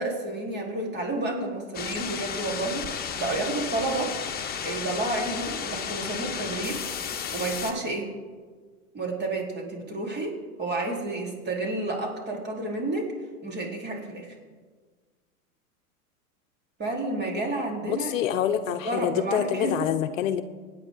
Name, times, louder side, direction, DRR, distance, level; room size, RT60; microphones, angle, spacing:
voice 1, 0.0-4.1 4.6-6.8 7.3-8.1 8.9-13.2 13.4-14.4 16.8-18.1 18.7-19.9, right 2 dB, 25° right, -1 dB, 4.2 m, -30 dB
sound 1, 1.7-7.7, left 7 dB, 20° left, 1.6 m, -33 dB
voice 2, 17.9-20.4, left 10 dB, 60° left, 10 dB, 1.0 m, -26 dB
25.0 x 9.9 x 4.0 m, 1.5 s
hypercardioid pair, 100°, 44 cm